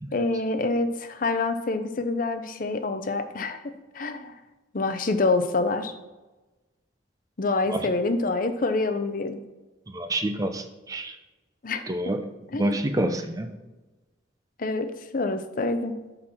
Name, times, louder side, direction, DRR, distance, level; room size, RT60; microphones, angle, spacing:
voice 1, 0.1-3.6 3.9-4.3 4.7-5.9 7.4-9.4 11.6-11.8 12.5-12.8 14.6-14.9 15.1-15.9, left 3 dB, 45° left, 9 dB, 0.6 m, -26 dB
voice 2, 9.9-11.2 11.9-12.2 12.5-13.5, right 1 dB, 20° right, 7 dB, 0.5 m, -27 dB
6.4 x 5.6 x 4.4 m, 1.1 s
head